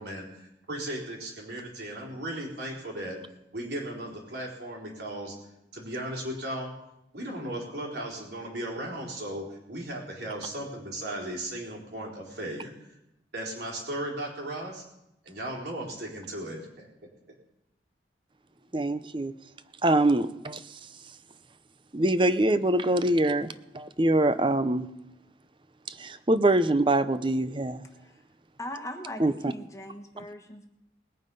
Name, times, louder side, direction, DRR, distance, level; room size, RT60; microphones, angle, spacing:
voice 1, 0.0-3.2 3.5-5.3 5.7-6.7 7.1-13.0 13.3-14.8 15.2-16.9, right 1 dB, 65° right, -1 dB, 3.9 m, -36 dB
voice 2, 18.7-19.3 19.8-20.8 21.9-24.9 25.9-27.8 29.2-29.3, right 1 dB, 25° right, 13 dB, 0.6 m, -24 dB
voice 3, 28.6-30.7, left 1 dB, 15° left, 4 dB, 1.4 m, -39 dB
20.5 x 8.7 x 5.5 m, 0.88 s
head